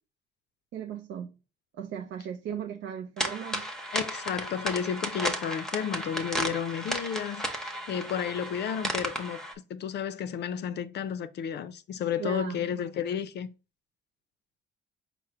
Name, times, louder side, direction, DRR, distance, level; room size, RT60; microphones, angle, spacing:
voice 1, 0.7-1.4 1.7-3.7 12.2-12.8, right 9 dB, 80° right, 0.5 m, -37 dB
sound 1, 3.2-9.5, equal, 5° left, 0.7 m, -34 dB
voice 2, 3.9-9.4 9.7-13.5, left 8 dB, 60° left, 0.5 m, -32 dB
4.9 x 2.1 x 4.3 m
cardioid pair, 110°, 19 cm